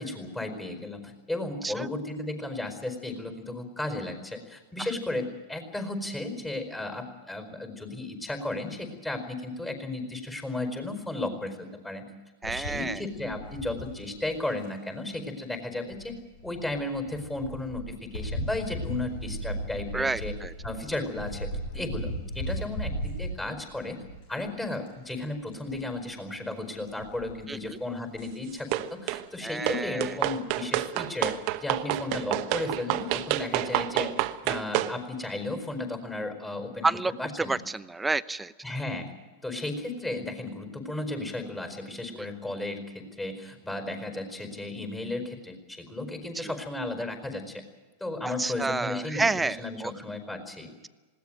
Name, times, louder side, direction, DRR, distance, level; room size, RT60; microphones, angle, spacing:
voice 1, 0.0-12.1 12.5-16.1 16.4-20.3 20.6-24.0 24.3-34.1 34.4-36.9 37.2-37.6 38.6-39.1 39.4-47.6 48.0-50.7, left 2 dB, 10° left, 6 dB, 4.8 m, -34 dB
sound 1, 12.4-14.7 15.9-24.5 24.9-25.2 25.5-26.0 26.8-27.7 28.2-28.3 28.5-28.6, equal, 65° left, 7.2 m, -37 dB
voice 2, 12.4-13.0 19.9-20.5 27.5-27.8 29.4-30.0 36.8-37.1 37.4-38.5 42.1-42.3 46.3-46.5 48.2-49.9, right 3 dB, 10° right, 15 dB, 0.8 m, -29 dB
sound 2, 28.7-29.2 29.7-34.9, right 16 dB, 50° right, 1.2 m, -29 dB
20.5 x 17.0 x 9.1 m, 1.3 s
hypercardioid pair, 100°, 0 cm